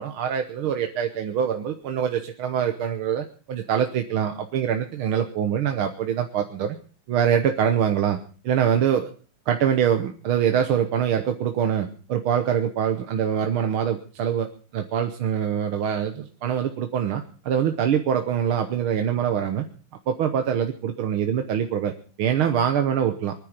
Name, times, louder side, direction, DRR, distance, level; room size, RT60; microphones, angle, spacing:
voice 1, 0.0-6.8 7.1-8.2 8.4-9.1 9.5-19.7 20.1-23.3, right 8 dB, 80° right, 6 dB, 1.9 m, -24 dB
24.0 x 10.0 x 5.0 m, 0.39 s
omnidirectional pair, 2.4 m